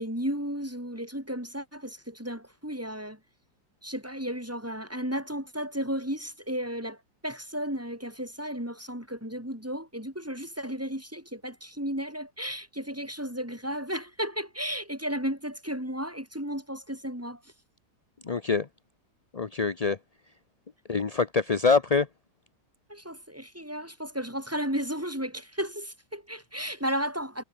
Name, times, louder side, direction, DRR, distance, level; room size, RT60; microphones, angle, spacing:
voice 1, 0.0-3.2 3.8-7.0 7.2-17.4 22.9-27.4, equal, 5° right, 4.3 m, -34 dB
voice 2, 18.3-18.7 19.3-20.0 20.9-22.1, left 4 dB, 35° left, 0.6 m, -24 dB
omnidirectional pair, 2.0 m